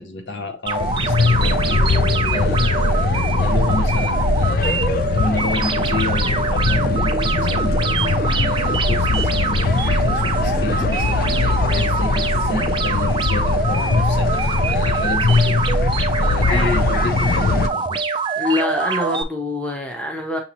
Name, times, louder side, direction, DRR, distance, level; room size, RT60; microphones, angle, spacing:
voice 1, 0.0-15.6 16.2-18.1, left 3 dB, 65° left, 0.8 m, -30 dB
sound 1, 0.7-19.2, right 4 dB, 25° right, 0.4 m, -24 dB
sound 2, 0.8-17.7, left 3 dB, 45° left, 0.3 m, -20 dB
sound 3, 6.5-8.8 9.4-11.6, right 1 dB, 40° right, 0.7 m, -37 dB
voice 2, 18.4-20.4, left 2 dB, 5° left, 0.7 m, -25 dB
6.3 x 2.8 x 2.8 m
head